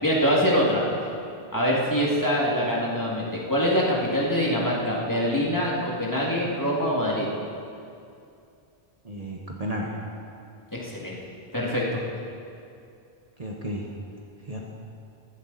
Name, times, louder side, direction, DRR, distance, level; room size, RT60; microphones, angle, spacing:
voice 1, 0.0-0.8 1.5-7.3 10.7-11.2 11.5-12.0, equal, 20° left, -5 dB, 2.3 m, -24 dB
voice 2, 9.0-9.9 13.4-13.8 14.5-14.7, equal, 35° right, -2 dB, 1.2 m, -33 dB
15.5 x 13.0 x 4.1 m, 2.5 s
omnidirectional pair, 1.1 m